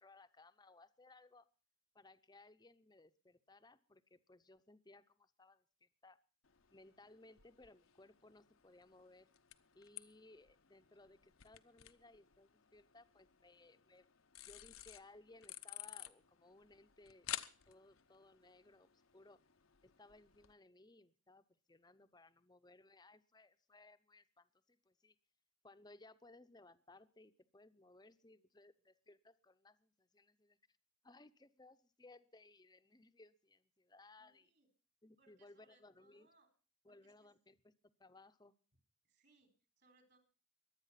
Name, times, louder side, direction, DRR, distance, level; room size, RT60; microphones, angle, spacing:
voice 1, 0.0-1.5 1.9-6.2 6.7-9.3 9.7-14.1 14.3-17.3 17.7-19.4 19.8-25.2 25.6-30.6 31.0-34.5 35.0-36.3 36.8-37.7 38.0-38.5, left 2 dB, 20° left, 11 dB, 0.8 m, -63 dB
sound 1, 6.4-20.5, left 13 dB, 80° left, 0.9 m, -54 dB
voice 2, 34.2-34.7 35.2-36.5 36.9-37.3 39.0-40.2, right 3 dB, 50° right, 6 dB, 4.2 m, -73 dB
23.0 x 9.0 x 5.8 m, 0.38 s
head